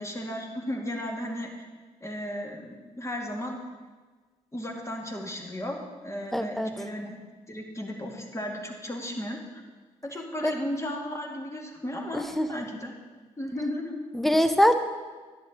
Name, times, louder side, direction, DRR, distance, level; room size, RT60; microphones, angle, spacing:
voice 1, 0.0-1.5 2.0-3.6 4.5-7.2 7.5-9.6 10.0-12.2 12.5-12.9 13.4-14.0, left 1 dB, 20° left, 1 dB, 2.2 m, -35 dB
voice 2, 6.3-6.7 10.4-10.5 12.1-12.5 14.1-14.7, equal, ahead, 9 dB, 0.9 m, -23 dB
11.0 x 9.9 x 3.9 m, 1.4 s
hypercardioid pair, 40°, 16 cm